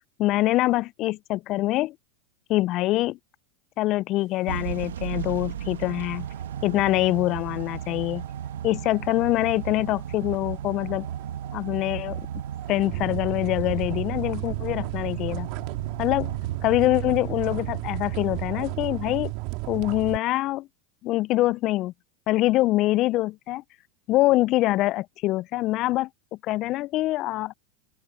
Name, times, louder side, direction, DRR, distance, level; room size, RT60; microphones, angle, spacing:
voice 1, 0.2-1.9 2.5-3.2 3.8-6.3 6.6-8.2 8.6-11.1 11.5-12.2 12.7-15.5 16.0-16.3 16.6-19.3 19.7-20.7 21.0-21.9 22.3-23.6 24.1-26.1 26.4-27.5, left 17 dB, 45° left, 0.6 m, -24 dB
Motor vehicle (road) / Engine starting / Accelerating revving vroom, 4.5-19.4, right 9 dB, 75° right, 1.5 m, -35 dB
sound 1, 5.8-20.2, right 27 dB, 55° right, 3.1 m, -36 dB
open air
hypercardioid pair, 90°, 0 cm